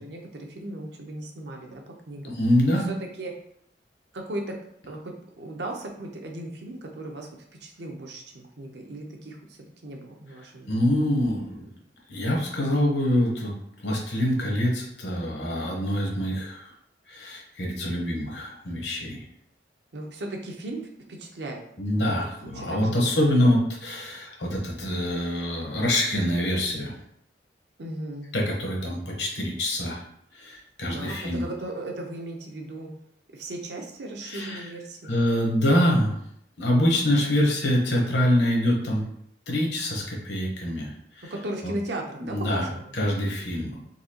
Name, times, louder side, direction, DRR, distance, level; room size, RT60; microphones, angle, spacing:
voice 1, 0.0-2.3 2.9-3.3 4.1-4.5 4.9-7.3 7.6-10.7 19.9-21.6 22.0-22.9 23.3-23.4 27.8-28.3 30.8-32.9 33.3-35.1 37.0-37.3 41.3-42.9, right 1 dB, 65° right, 2 dB, 0.7 m, -37 dB
voice 2, 2.3-2.9 10.7-11.7 12.1-13.5 13.8-16.7 17.1-19.2 21.8-26.9 28.3-30.0 30.3-31.4 34.2-34.7 35.1-36.2 36.6-39.0 39.5-41.3 42.2-42.7 42.9-43.8, left 1 dB, 70° left, -1 dB, 1.0 m, -25 dB
4.0 x 2.7 x 2.8 m, 0.69 s
head